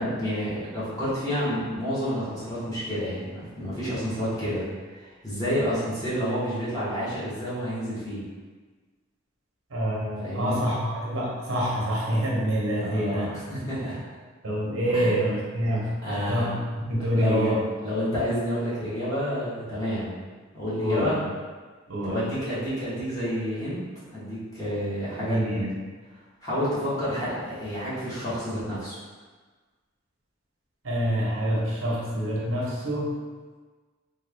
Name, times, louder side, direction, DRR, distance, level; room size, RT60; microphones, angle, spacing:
voice 1, 0.0-4.7 4.9-8.2 10.2-10.6 12.8-14.0 14.9-15.1 16.0-16.5 17.2-17.6 17.8-20.2 20.5-21.2 22.0-23.8 24.1-25.4 26.4-29.0, equal, 20° left, -11 dB, 1.2 m, -29 dB
voice 2, 9.7-13.3 14.4-17.7 20.8-21.3 21.9-22.2 25.2-25.7 30.8-33.1, equal, 85° right, -4 dB, 0.8 m, -27 dB
3.3 x 2.3 x 3.3 m, 1.4 s
head